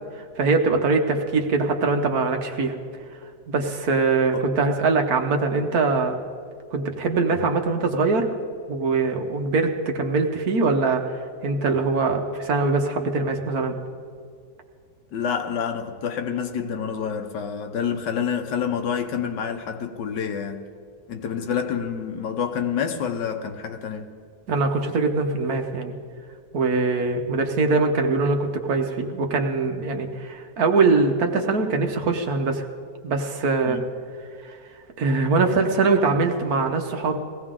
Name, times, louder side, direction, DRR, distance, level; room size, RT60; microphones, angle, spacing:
voice 1, 0.4-2.8 3.5-6.2 6.7-8.3 8.7-13.8 24.5-25.9 26.5-32.7 33.0-33.8 34.4-34.6 35.0-37.2, right 3 dB, 60° right, 1.4 m, -22 dB
voice 2, 15.1-20.7 21.1-24.1 33.6-33.9, left 7 dB, 80° left, 1.6 m, -28 dB
21.0 x 16.0 x 3.8 m
omnidirectional pair, 1.9 m